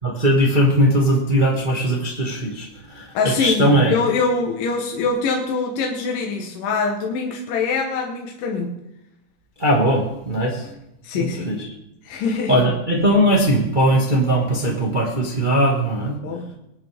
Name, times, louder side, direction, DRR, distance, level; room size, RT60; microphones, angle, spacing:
voice 1, 0.0-4.0 9.6-10.7 11.1-11.7 12.5-16.1, equal, 25° right, -2 dB, 1.1 m, -19 dB
voice 2, 3.1-8.8 10.6-10.7 11.0-11.6 12.0-12.6 16.2-16.5, left 4 dB, 70° left, 0 dB, 2.8 m, -24 dB
21.0 x 9.8 x 3.6 m, 0.86 s
omnidirectional pair, 4.1 m